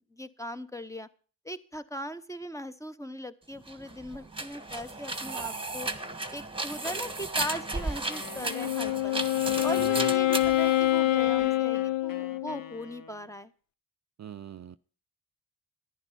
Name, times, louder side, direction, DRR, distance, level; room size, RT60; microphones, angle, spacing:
voice 1, 0.1-1.1 1.4-5.9 6.3-9.2 9.6-13.5, equal, 5° left, 11 dB, 0.9 m, -39 dB
sound 1, 3.6-11.5, right 2 dB, 10° right, 1.5 m, -35 dB
Wind instrument woodwind instrument, 7.4-13.4, left 6 dB, 50° left, 1.0 m, -47 dB
Wind instrument woodwind instrument 2, 8.3-12.7, left 15 dB, 90° left, 0.6 m, -26 dB
voice 2, 14.2-14.8, right 9 dB, 40° right, 13 dB, 0.5 m, -41 dB
11.0 x 10.0 x 5.7 m, 0.39 s
supercardioid pair, 40°, 44 cm